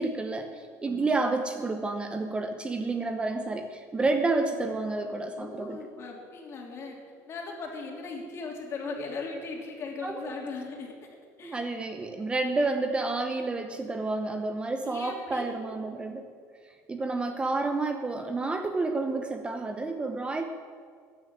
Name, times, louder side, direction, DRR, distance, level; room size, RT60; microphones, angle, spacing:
voice 1, 0.0-5.8 10.0-10.1 11.4-16.3 16.9-20.4, right 3 dB, 15° right, 6 dB, 0.9 m, -30 dB
voice 2, 5.4-7.0 7.3-10.9 11.4-11.6 14.4-14.5 14.8-15.5, left 4 dB, 40° left, 1 dB, 3.1 m, -38 dB
15.0 x 9.7 x 8.9 m, 2.1 s
cardioid pair, 145°, 7 cm